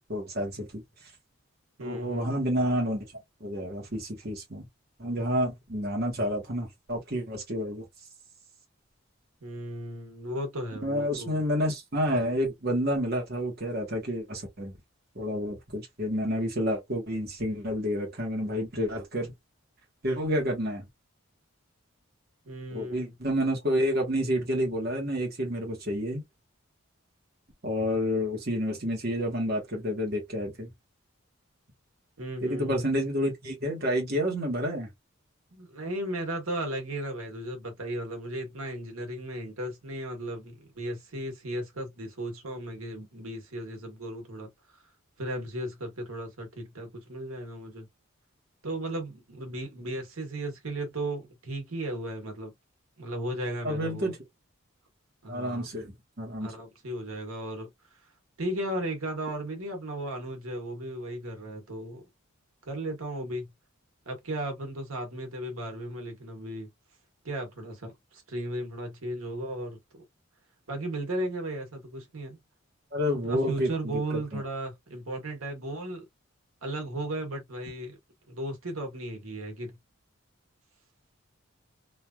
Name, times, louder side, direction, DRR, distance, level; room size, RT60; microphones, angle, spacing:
voice 1, 0.1-0.8 1.8-3.1 3.4-4.7 5.0-7.8 10.8-14.7 15.1-19.3 20.0-20.9 22.7-26.2 27.6-30.7 32.4-34.9 53.6-54.2 55.3-56.5 72.9-74.4, equal, 45° right, 1.1 m, -29 dB
voice 2, 1.8-2.3 9.4-11.4 22.4-23.1 32.2-32.9 35.5-44.8 45.2-47.9 48.6-52.5 53.0-54.1 55.2-55.7 56.4-58.0 58.4-62.1 62.6-63.5 64.0-66.7 67.2-70.0 70.7-72.4 73.2-76.1 76.6-78.0 78.3-79.8, right 1 dB, 85° right, 1.2 m, -35 dB
3.1 x 2.5 x 2.3 m
head